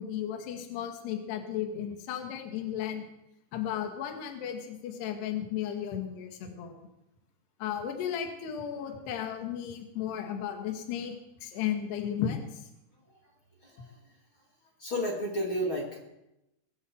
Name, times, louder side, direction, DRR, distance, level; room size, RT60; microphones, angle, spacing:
voice 1, 0.0-3.0 3.5-6.8 7.6-11.2 11.4-12.6, left 9 dB, 65° left, 3 dB, 3.7 m, -34 dB
voice 2, 13.6-14.0 14.8-16.0, equal, 35° left, -1 dB, 2.4 m, -32 dB
21.5 x 7.9 x 7.8 m, 0.88 s
omnidirectional pair, 5.5 m